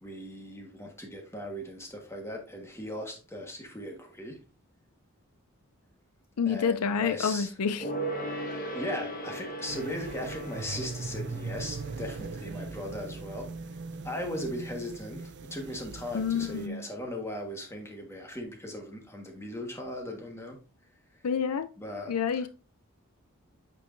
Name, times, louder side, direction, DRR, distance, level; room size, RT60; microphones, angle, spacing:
voice 1, 0.0-4.4 6.5-7.5 8.7-20.6 21.8-22.5, left 1 dB, 10° left, 1.4 m, -38 dB
voice 2, 6.4-7.8 8.5-8.6 16.1-16.8 21.2-21.7 22.1-22.5, left 6 dB, 85° left, 0.5 m, -28 dB
Gong, 7.8-13.7 14.0-14.1, right 1 dB, 40° left, 1.3 m, -38 dB
sound 1, 9.7-16.7, right 4 dB, 50° right, 0.4 m, -40 dB
8.5 x 4.6 x 2.6 m
head